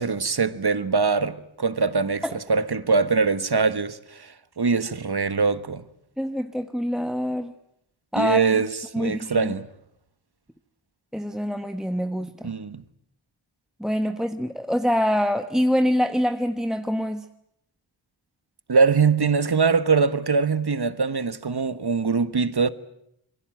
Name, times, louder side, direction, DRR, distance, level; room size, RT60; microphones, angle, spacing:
voice 1, 0.0-5.8 8.2-9.7 12.4-12.8 18.7-22.7, right 4 dB, 55° right, 1.4 m, -23 dB
voice 2, 6.2-7.5 8.1-8.6 8.9-9.5 11.1-12.5 13.8-17.2, equal, ahead, 1.2 m, -25 dB
27.0 x 22.5 x 9.2 m
wide cardioid pair, 60°, 47 cm